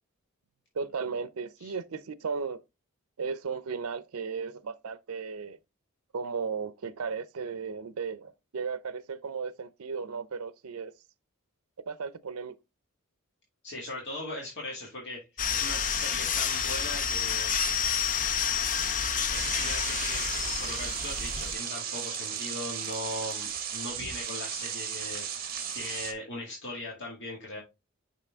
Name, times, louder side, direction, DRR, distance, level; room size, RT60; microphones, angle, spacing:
voice 1, 0.7-2.6 3.2-5.6 6.1-10.9 11.9-12.6, right 5 dB, 85° right, 0.5 m, -35 dB
voice 2, 13.6-15.3 15.5-18.2 19.3-27.6, left 2 dB, 55° left, 2.0 m, -39 dB
sound 1, 15.4-21.5, left 7 dB, 40° left, 0.6 m, -29 dB
sound 2, 19.3-26.1, right 8 dB, 45° right, 1.5 m, -35 dB
5.7 x 5.6 x 3.5 m
head